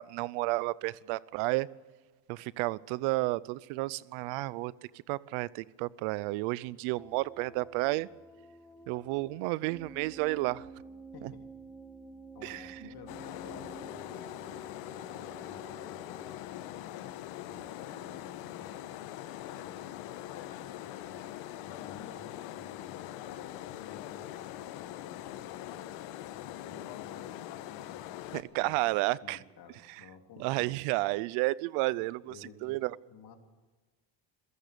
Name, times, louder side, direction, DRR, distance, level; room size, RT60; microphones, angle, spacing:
voice 1, 0.0-1.7 2.3-8.1 8.9-10.7 11.2-11.3 12.4-12.9 28.3-29.4 29.9-30.0 30.4-32.3 32.6-32.9, right 21 dB, 90° right, 0.7 m, -32 dB
sound 1, 6.9-16.4, right 2 dB, 5° left, 1.0 m, -50 dB
voice 2, 11.1-11.4 12.3-14.7 15.0-18.9 19.5-26.0 26.3-28.8 29.2-30.8 32.3-32.8 33.1-33.4, left 5 dB, 50° left, 3.2 m, -53 dB
sound 2, 13.1-28.4, left 13 dB, 85° left, 1.4 m, -42 dB
27.0 x 16.5 x 6.8 m
cardioid pair, 105°, 48 cm